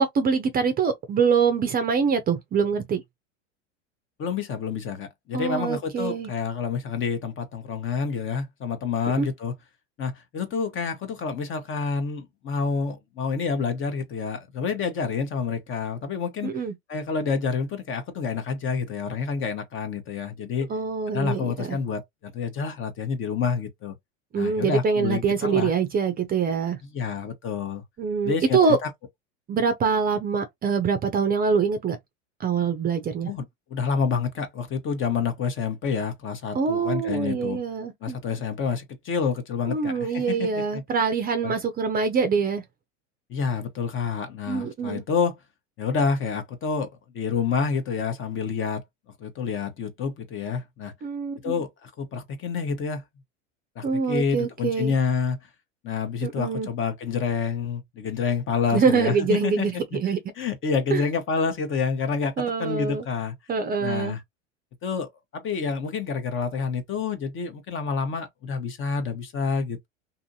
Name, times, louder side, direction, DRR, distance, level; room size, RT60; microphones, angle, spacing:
voice 1, 0.0-3.0 5.3-6.3 9.2-9.3 16.4-16.7 20.7-21.8 24.3-26.8 28.0-28.8 29.5-32.0 32.4-33.3 36.5-38.2 39.7-42.6 44.5-45.0 51.0-51.5 53.8-54.9 56.2-56.7 58.7-59.7 60.0-60.2 60.9-61.0 62.4-63.0 63.5-64.2, right 5 dB, 25° right, 0.6 m, -24 dB
voice 2, 4.2-9.5 10.0-16.5 16.9-20.7 21.1-23.9 24.3-25.7 26.9-27.8 28.2-28.9 33.3-33.4 33.7-37.6 38.0-40.8 41.4-41.5 43.3-45.4 45.8-46.9 47.1-48.8 49.2-50.9 51.4-53.0 53.8-55.4 55.8-60.0 60.4-63.3 63.8-64.2 64.8-69.9, left 5 dB, 35° left, 0.8 m, -28 dB
2.6 x 2.6 x 2.6 m
hypercardioid pair, 95°, 38 cm